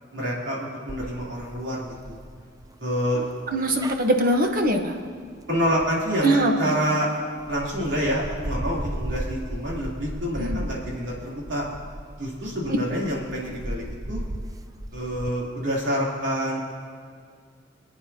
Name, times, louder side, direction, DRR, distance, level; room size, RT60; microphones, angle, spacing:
voice 1, 0.1-2.2 2.8-3.2 5.5-7.1 7.5-11.6 12.2-14.2 14.9-16.6, equal, 90° right, -5 dB, 3.2 m, -27 dB
sound 1, 0.9-6.9 7.4-15.3, right 1 dB, 20° right, 0.4 m, -36 dB
voice 2, 3.2-4.9 6.2-6.7 10.3-10.6, right 1 dB, 50° right, 4 dB, 1.1 m, -23 dB
27.0 x 9.3 x 2.8 m, 2.1 s
head